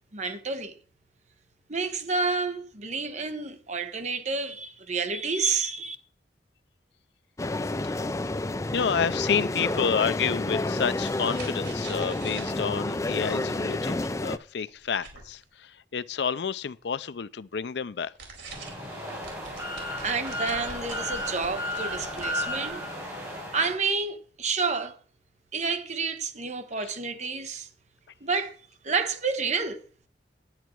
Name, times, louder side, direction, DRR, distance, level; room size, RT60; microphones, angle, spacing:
voice 1, 0.1-0.7 1.7-6.0 20.0-22.8 23.5-25.0 25.5-27.7 28.2-28.6 28.8-29.8, right 4 dB, 40° right, 1.2 m, -29 dB
sound 1, 7.4-14.4, left 2 dB, 20° left, 0.4 m, -30 dB
voice 2, 8.7-18.1, left 6 dB, 75° left, 0.5 m, -29 dB
sound 2, 10.6-15.4 18.0-18.9 19.2-22.7, right 4 dB, 90° right, 4.2 m, -46 dB
sound 3, 18.5-23.7, left 1 dB, 20° right, 4.7 m, -34 dB
10.5 x 9.3 x 4.6 m
head